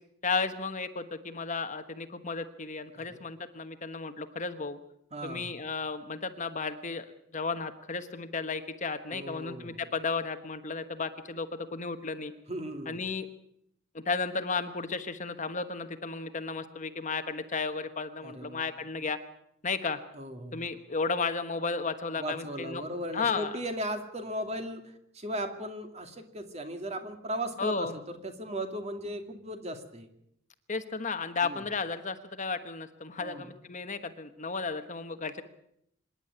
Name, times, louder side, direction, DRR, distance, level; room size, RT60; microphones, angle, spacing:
voice 1, 0.2-4.8 5.2-12.3 12.9-13.3 13.9-19.2 19.6-20.0 20.5-22.8 23.1-23.6 27.6-28.0 30.7-35.4, left 4 dB, 40° left, 9 dB, 1.2 m, -34 dB
voice 2, 5.1-5.6 9.1-9.9 12.5-13.0 18.2-18.7 20.1-20.7 22.2-30.1 31.4-31.6 33.2-33.5, right 1 dB, 35° right, 6 dB, 2.5 m, -37 dB
26.0 x 11.0 x 9.7 m, 0.75 s
head